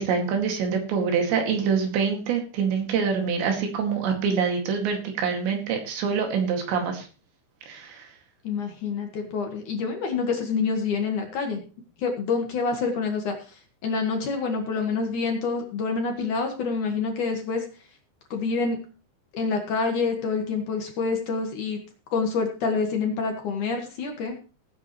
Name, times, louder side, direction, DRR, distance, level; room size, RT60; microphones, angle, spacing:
voice 1, 0.0-7.1 7.7-8.1, right 6 dB, 70° right, 3 dB, 4.4 m, -25 dB
voice 2, 8.4-11.6 12.0-17.7 18.3-18.8 19.3-21.8 22.1-24.4, left 4 dB, 60° left, 3 dB, 2.4 m, -27 dB
18.0 x 9.5 x 3.1 m, 0.35 s
omnidirectional pair, 5.5 m